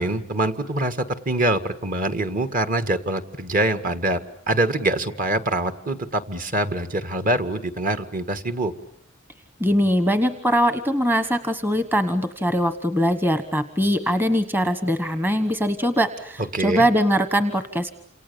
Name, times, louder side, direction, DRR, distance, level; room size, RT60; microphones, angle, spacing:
voice 1, 0.0-8.7 16.4-16.9, right 2 dB, 40° right, 9 dB, 2.0 m, -24 dB
voice 2, 9.6-17.9, equal, 10° right, 10 dB, 1.2 m, -22 dB
29.0 x 28.0 x 7.1 m, 0.65 s
head